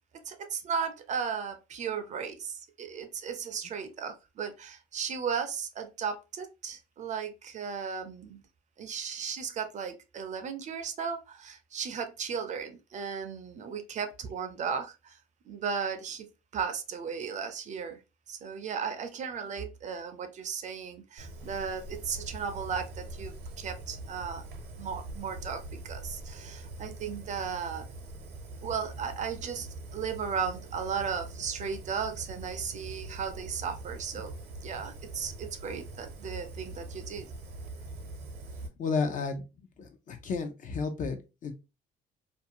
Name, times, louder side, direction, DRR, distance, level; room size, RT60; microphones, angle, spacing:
voice 1, 0.1-8.4 8.8-15.2 15.5-18.0 18.3-24.4 24.8-27.9 28.6-34.3 34.6-37.3, right 6 dB, 45° right, 0.5 m, -36 dB
Fire, 21.2-38.7, right 2 dB, 80° right, 0.7 m, -43 dB
voice 2, 38.8-39.4 39.8-41.5, left 4 dB, 50° left, 0.6 m, -32 dB
2.5 x 2.3 x 2.7 m
cardioid pair, 110°, 17 cm